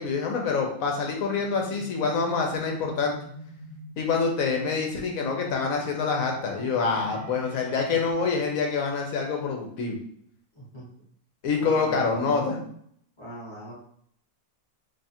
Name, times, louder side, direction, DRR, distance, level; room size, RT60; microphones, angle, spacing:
voice 1, 0.0-3.1 4.0-10.0 11.4-12.6, left 4 dB, 70° left, 1 dB, 1.1 m, -26 dB
sound 1, 1.3-8.1, left 1 dB, 65° right, 1.1 m, -44 dB
voice 2, 11.6-12.5 13.2-13.7, equal, 20° left, -6 dB, 0.9 m, -39 dB
2.8 x 2.4 x 4.1 m, 0.65 s
omnidirectional pair, 1.6 m